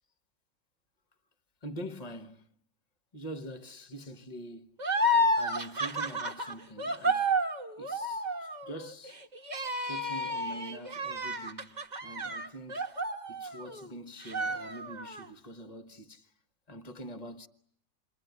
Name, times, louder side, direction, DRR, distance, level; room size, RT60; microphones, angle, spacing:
voice 1, 1.6-2.5 3.1-4.8 5.4-7.3 7.8-9.2 9.9-12.9 13.3-16.3 16.7-17.5, right 1 dB, 25° left, 1.2 m, -44 dB
sound 1, 4.8-13.9 14.2-15.3, equal, 25° right, 1.3 m, -31 dB
28.0 x 22.5 x 9.4 m
omnidirectional pair, 2.0 m